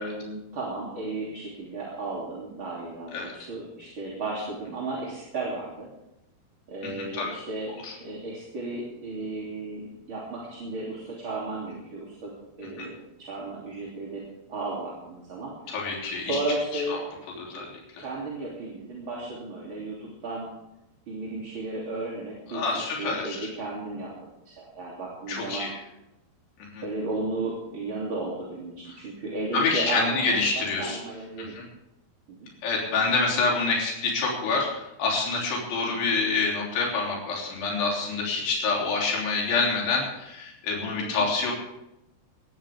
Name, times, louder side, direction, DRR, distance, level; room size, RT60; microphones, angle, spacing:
voice 1, 0.0-5.9 6.7-12.3 12.6-14.2 14.5-17.1 18.0-20.5 21.1-24.1 24.4-25.7 26.8-31.6 32.3-32.5 32.9-33.1 35.9-36.1 41.0-41.3, right 2 dB, 35° right, -5 dB, 3.3 m, -34 dB
voice 2, 6.8-7.3 7.8-7.9 12.8-12.9 15.7-16.4 16.7-16.8 17.4-17.7 18.0-18.1 22.5-23.4 25.3-25.7 26.7-26.8 29.5-31.0 31.4-31.6 32.6-41.5, left 4 dB, 85° left, -2 dB, 5.4 m, -27 dB
20.0 x 14.0 x 3.6 m, 0.89 s
omnidirectional pair, 4.7 m